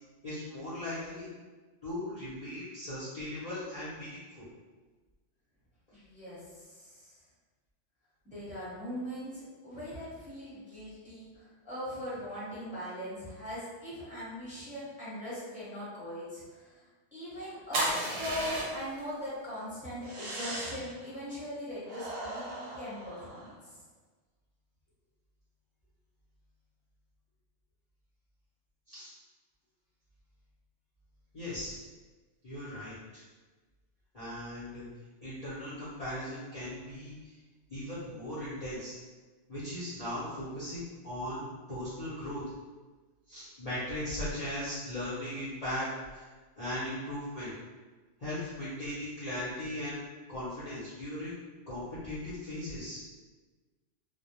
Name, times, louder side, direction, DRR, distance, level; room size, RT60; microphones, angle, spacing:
voice 1, 0.2-1.3 1.8-4.5 28.9-29.1 31.3-31.8 32.4-33.2 34.1-34.9 35.2-37.4 37.7-38.9 39.5-42.4 43.3-46.3 46.6-47.5 48.2-50.0 50.3-51.3 51.7-53.0, left 1 dB, 40° left, -12 dB, 0.7 m, -38 dB
voice 2, 5.9-7.1 8.2-17.9 18.2-23.8, equal, 5° right, -11 dB, 0.8 m, -40 dB
sound 1, 17.7-19.0 20.0-20.9 21.8-23.5, right 1 dB, 60° right, 0.8 m, -35 dB
2.2 x 2.0 x 2.9 m, 1.3 s
omnidirectional pair, 1.3 m